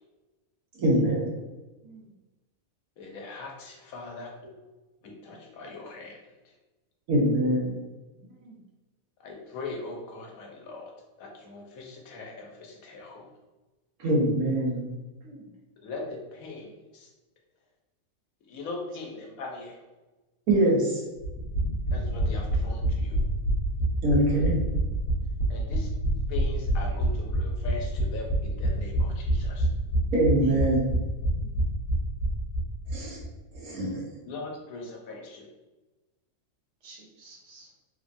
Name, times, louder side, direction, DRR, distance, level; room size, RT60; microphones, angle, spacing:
voice 1, 0.8-1.3 7.1-7.8 14.0-14.9 20.5-21.0 24.0-24.6 30.1-30.9 32.9-33.2 33.5-34.0, right 1 dB, 85° right, -3 dB, 1.3 m, -23 dB
voice 2, 3.0-4.3 5.0-6.2 9.2-10.9 11.2-13.3 15.8-17.1 18.5-19.8 21.9-23.2 25.5-25.9 26.3-29.7 34.2-35.5, left 3 dB, 80° left, 0 dB, 1.1 m, -40 dB
voice 3, 8.2-8.6 15.2-15.5 30.4-30.6 31.4-31.5 36.8-37.7, right 4 dB, 60° right, -3 dB, 1.0 m, -47 dB
sound 1, 21.2-32.9 33.2-33.3 33.5-33.6, right 1 dB, 55° left, 1.0 m, -27 dB
3.2 x 2.2 x 2.5 m, 1.1 s
omnidirectional pair, 1.5 m